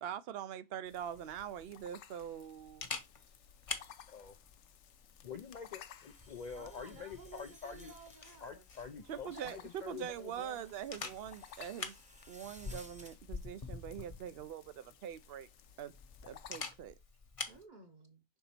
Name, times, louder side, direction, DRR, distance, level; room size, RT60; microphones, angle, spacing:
voice 1, 0.0-2.9 9.1-11.9 12.3-15.5 15.8-15.9 16.2-16.9, right 9 dB, 65° right, 0.8 m, -43 dB
sound 1, 0.9-16.7, left 9 dB, 80° left, 0.9 m, -58 dB
Camera, 0.9-17.6, left 4 dB, 30° left, 0.9 m, -48 dB
voice 2, 4.1-4.4 5.2-7.9 8.4-10.7, left 6 dB, 55° left, 0.5 m, -47 dB
sound 2, 6.0-13.2, equal, 5° right, 0.8 m, -61 dB
voice 3, 6.6-9.7 17.5-18.2, right 4 dB, 45° right, 1.0 m, -55 dB
5.9 x 3.9 x 4.2 m
omnidirectional pair, 1.2 m